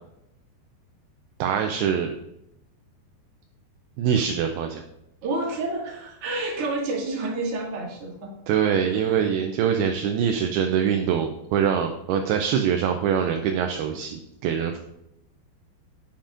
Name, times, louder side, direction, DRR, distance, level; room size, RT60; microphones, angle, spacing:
voice 1, 1.4-2.1 4.0-4.8 8.5-14.8, right 8 dB, 85° right, 4 dB, 2.2 m, -24 dB
voice 2, 5.2-8.3 8.8-9.2, right 2 dB, 45° right, -4 dB, 2.2 m, -29 dB
8.5 x 7.5 x 2.5 m, 0.84 s
omnidirectional pair, 5.0 m